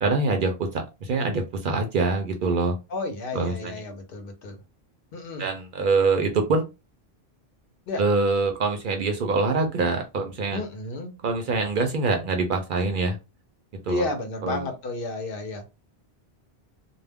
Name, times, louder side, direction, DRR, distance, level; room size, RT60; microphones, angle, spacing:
voice 1, 0.0-2.8 3.3-3.8 5.4-6.6 8.0-10.6 11.2-13.2 13.9-14.0 14.4-14.6, right 3 dB, 60° right, 4 dB, 0.6 m, -24 dB
voice 2, 2.9-4.6 5.1-5.5 7.9-8.0 10.5-11.1 13.9-15.6, left 2 dB, 60° left, 6 dB, 0.8 m, -31 dB
2.2 x 2.1 x 3.4 m, 0.27 s
omnidirectional pair, 1.1 m